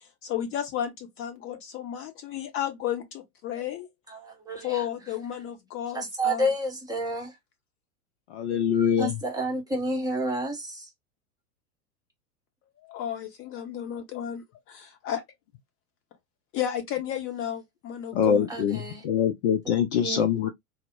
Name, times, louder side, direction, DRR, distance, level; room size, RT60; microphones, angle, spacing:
voice 1, 0.2-3.9 4.6-6.5 12.8-15.2 16.5-18.5, left 10 dB, 30° left, 0.9 m, -33 dB
voice 2, 4.1-4.8 5.9-7.3 9.0-10.9 18.5-19.0 19.6-20.3, right 1 dB, 10° right, 0.8 m, -30 dB
voice 3, 8.3-9.1 18.1-18.8 19.0-20.5, left 8 dB, 45° left, 0.5 m, -24 dB
4.0 x 2.0 x 2.5 m
figure-of-eight pair, 95°, 47 cm